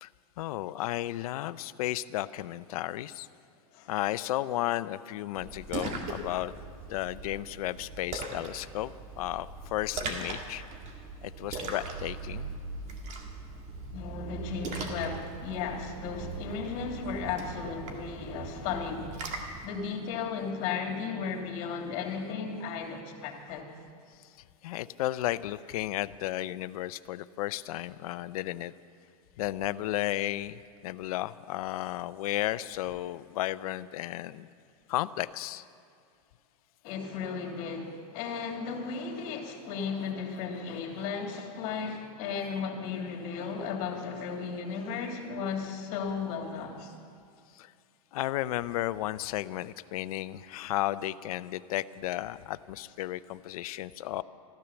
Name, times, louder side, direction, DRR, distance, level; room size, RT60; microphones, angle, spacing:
voice 1, 0.4-3.3 3.9-6.5 6.9-10.6 11.2-12.5 24.2-24.3 24.6-28.7 29.4-34.5 34.9-35.6 47.5-47.7 48.1-54.2, left 15 dB, 70° left, 16 dB, 0.6 m, -33 dB
Splash splatter, 5.4-19.7, right 3 dB, 35° right, 2.1 m, -40 dB
voice 2, 13.9-23.7 36.8-46.9, left 5 dB, 55° left, 0 dB, 3.0 m, -35 dB
14.0 x 13.5 x 7.1 m, 2.3 s
supercardioid pair, 130°, 19 cm